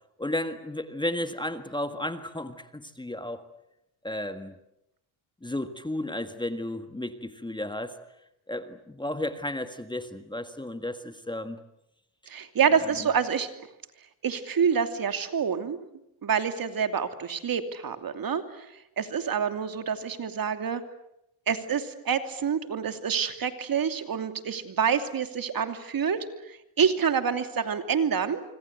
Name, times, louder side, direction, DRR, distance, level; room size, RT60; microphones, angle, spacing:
voice 1, 0.2-3.4 4.0-4.6 5.4-8.0 8.5-11.6, left 1 dB, 10° left, 9 dB, 1.6 m, -33 dB
voice 2, 12.3-13.5 14.2-15.8 16.2-18.7 19.0-20.8 21.5-28.4, right 7 dB, 45° right, 8 dB, 2.8 m, -27 dB
26.0 x 25.0 x 8.1 m, 0.84 s
cardioid pair, 90°, 49 cm